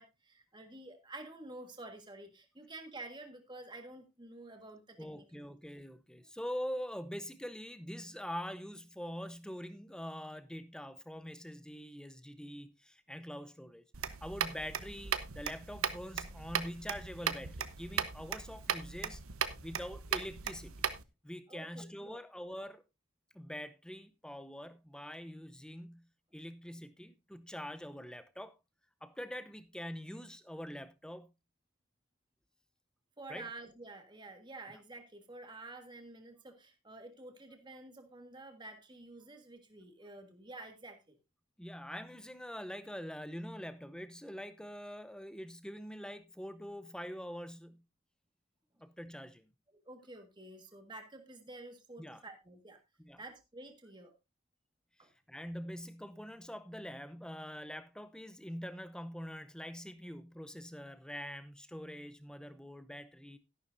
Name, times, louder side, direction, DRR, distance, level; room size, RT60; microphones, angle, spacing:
voice 1, 0.0-5.3 21.5-22.2 33.2-41.2 49.7-52.8 53.2-54.1 55.0-55.1, right 2 dB, 20° right, 1.6 m, -50 dB
voice 2, 5.0-13.8 14.2-19.2 19.6-20.9 21.2-22.8 23.3-28.6 29.0-31.3 33.3-33.5 41.6-47.8 48.8-49.5 52.0-52.2 53.0-53.2 55.0-63.4, equal, 5° left, 0.7 m, -44 dB
sound 1, 13.9-21.0, right 7 dB, 75° right, 1.0 m, -38 dB
13.0 x 11.5 x 2.6 m
head